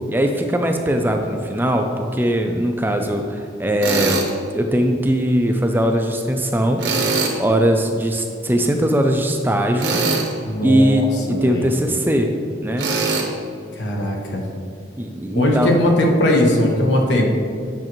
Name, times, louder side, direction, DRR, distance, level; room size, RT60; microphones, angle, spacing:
voice 1, 0.1-4.2 4.5-6.8 7.4-10.0 10.6-12.3 12.6-12.9 15.0-15.7, equal, 10° right, 4 dB, 0.4 m, -20 dB
Tools, 3.8-4.3 6.8-7.4 9.8-10.3 12.8-13.3, right 4 dB, 75° right, 1.0 m, -21 dB
voice 2, 10.4-11.7 13.8-14.4 15.3-17.3, left 1 dB, 80° left, 0 dB, 1.1 m, -19 dB
8.7 x 6.0 x 3.0 m, 2.4 s
head